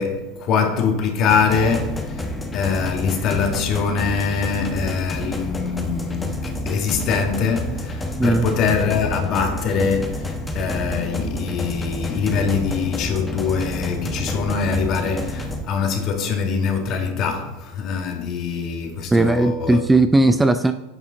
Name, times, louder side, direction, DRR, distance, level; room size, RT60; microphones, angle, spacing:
voice 1, 0.0-19.8, left 5 dB, 45° left, 1.6 m, -23 dB
sound 1, 1.3-15.6, left 1 dB, 15° left, 1.1 m, -29 dB
voice 2, 19.1-20.7, right 2 dB, 10° right, 0.4 m, -17 dB
9.4 x 5.4 x 3.9 m
hypercardioid pair, 90°, 0 cm